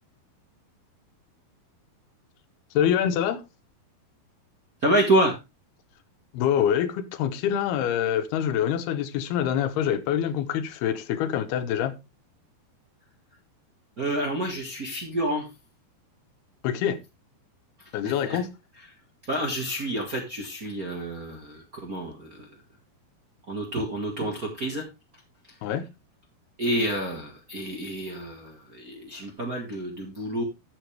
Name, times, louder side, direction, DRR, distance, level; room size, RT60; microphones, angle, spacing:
voice 1, 2.7-3.4 6.3-11.9 16.6-17.0 17.9-18.5 25.6-25.8, left 9 dB, 90° left, 3.0 m, -25 dB
voice 2, 4.8-5.4 14.0-15.4 18.0-18.4 19.3-22.4 23.5-24.8 26.6-30.4, right 1 dB, 40° right, 1.3 m, -28 dB
12.5 x 7.5 x 3.3 m
omnidirectional pair, 4.4 m